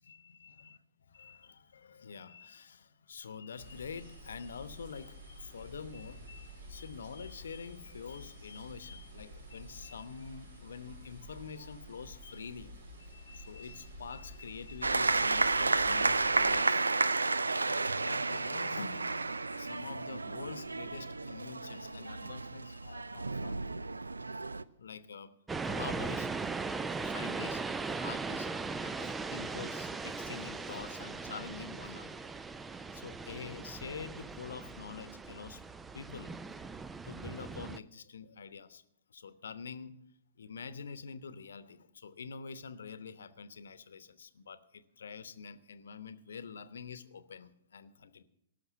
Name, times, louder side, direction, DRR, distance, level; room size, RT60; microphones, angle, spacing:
voice 1, 0.1-0.8 1.1-23.6 24.8-25.3 25.6-26.5 27.0-27.6 27.9-28.5 28.8-32.2 32.9-35.6 35.9-36.3 37.1-38.8 39.1-40.0 40.4-48.2, left 6 dB, 60° left, 13 dB, 1.0 m, -46 dB
sound 1, 3.6-16.6, equal, 60° right, 3.2 m, -50 dB
sound 2, 14.8-24.6, right 3 dB, 75° right, 0.5 m, -31 dB
sound 3, 25.5-37.8, right 4 dB, 10° right, 0.4 m, -39 dB
18.5 x 6.5 x 8.0 m, 0.78 s
figure-of-eight pair, 115°, 0 cm